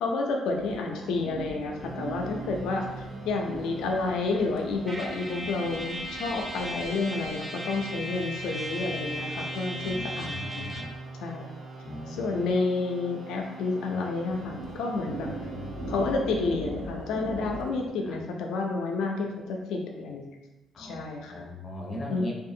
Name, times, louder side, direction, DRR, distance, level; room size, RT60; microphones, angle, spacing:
voice 1, 0.0-2.8 3.2-10.7 11.2-11.5 12.1-15.3 15.9-20.4 20.8-21.5 22.1-22.2, left 3 dB, 85° left, 2 dB, 0.4 m, -30 dB
sound 1, 0.5-17.9, right 2 dB, 85° right, 0.4 m, -42 dB
sound 2, 1.8-16.1, right 2 dB, 50° right, 0.8 m, -44 dB
Trumpet, 4.9-11.0, equal, 15° right, 0.4 m, -37 dB
voice 2, 9.8-10.9 11.8-12.5 15.1-16.1 18.0-18.2 20.7-22.3, left 1 dB, 40° left, -1 dB, 0.6 m, -40 dB
2.7 x 2.4 x 2.6 m, 1.1 s
cardioid pair, 90°, 0 cm